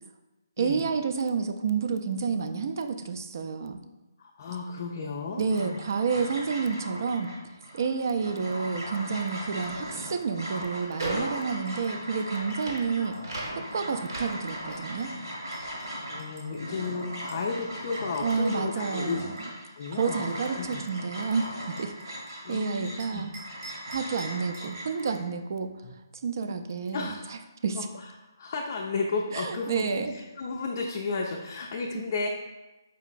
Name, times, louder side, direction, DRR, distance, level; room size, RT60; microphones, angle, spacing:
voice 1, 0.6-3.8 5.4-7.3 7.7-13.2 13.7-15.1 18.2-19.3 19.9-21.4 21.8-21.9 22.5-23.3 23.9-25.7 26.2-27.1 27.6-27.9 29.3-30.1, right 5 dB, 55° right, 8 dB, 0.3 m, -29 dB
voice 2, 4.2-5.8 16.1-19.2 19.7-20.8 22.4-23.3 25.8-25.9 26.9-27.4 27.8-32.3, left 4 dB, 45° left, 0 dB, 0.4 m, -33 dB
sound 1, 5.5-25.2, equal, 90° right, 1.3 m, -39 dB
sound 2, 9.4-16.8 17.1-18.6, right 2 dB, 70° right, 0.9 m, -40 dB
sound 3, 11.4-17.5 17.9-22.6 23.0-24.7, right 2 dB, 25° right, 0.7 m, -51 dB
4.7 x 2.9 x 2.5 m, 1.1 s
hypercardioid pair, 150°, 2 cm